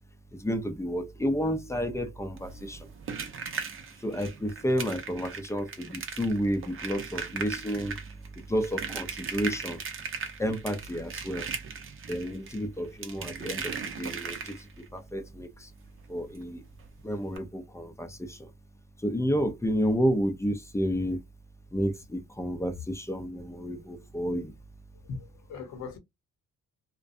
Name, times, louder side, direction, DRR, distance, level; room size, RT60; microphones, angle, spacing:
voice 1, 0.4-2.9 4.0-8.0 8.5-9.8 10.4-11.5 12.1-14.7 14.9-15.7 16.1-16.6 17.0-18.5 19.0-21.2 21.7-24.5, equal, 10° left, 0.4 m, -30 dB
sound 1, 2.4-14.9 16.3-16.4 16.7-16.9 17.3-17.4, right 6 dB, 45° right, 0.6 m, -38 dB
voice 2, 25.0-26.0, left 4 dB, 70° left, 0.8 m, -39 dB
2.5 x 2.1 x 2.4 m
cardioid pair, 90°, 30 cm